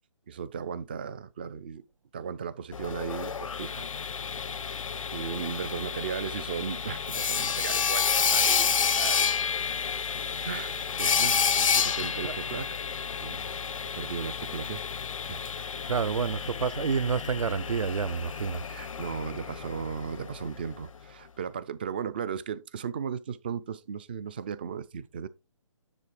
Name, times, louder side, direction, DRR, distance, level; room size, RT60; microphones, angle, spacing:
voice 1, 0.3-1.8 2.1-3.9 5.1-9.3 10.4-12.7 13.2-13.5 14.0-14.8 15.3-15.4 18.6-25.3, right 7 dB, 20° right, 0.3 m, -36 dB
Sawing, 2.7-20.5, left 6 dB, 75° left, 0.6 m, -30 dB
voice 2, 15.9-18.6, right 6 dB, 75° right, 0.6 m, -29 dB
9.8 x 3.3 x 4.8 m
hypercardioid pair, 155°, 17 cm